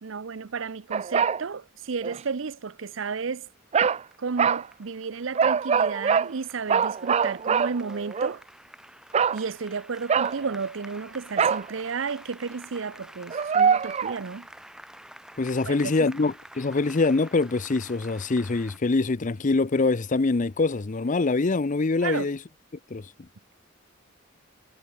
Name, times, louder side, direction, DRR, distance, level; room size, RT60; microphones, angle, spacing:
voice 1, 0.0-3.5 4.2-8.4 9.3-14.5 15.7-16.1 22.0-22.3, right 5 dB, 75° right, 0.6 m, -33 dB
sound 1, 0.9-1.4 2.0-2.2 3.7-4.0 4.4-4.7 5.3-6.3 6.7-8.3 9.1-9.4 10.1-10.5 11.4-11.7 13.3-14.2, right 6 dB, 35° right, 0.4 m, -23 dB
Applause, 3.5-18.8, right 1 dB, 5° right, 2.2 m, -49 dB
voice 2, 15.4-22.4 22.9-23.1, left 3 dB, 40° left, 0.6 m, -24 dB
head